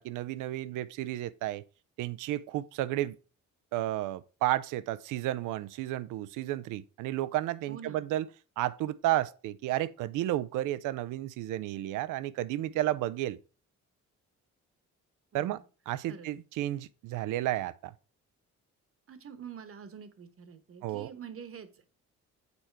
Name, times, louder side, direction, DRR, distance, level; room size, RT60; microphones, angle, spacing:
voice 1, 0.0-1.6 2.0-3.2 3.7-8.3 8.6-13.4 15.3-15.6 15.9-17.9 20.8-21.1, right 14 dB, 90° right, 0.5 m, -32 dB
voice 2, 7.7-8.1 15.3-15.6 16.1-16.3 19.1-21.8, right 7 dB, 45° right, 1.1 m, -46 dB
7.0 x 4.3 x 4.5 m
cardioid pair, 90°, 30 cm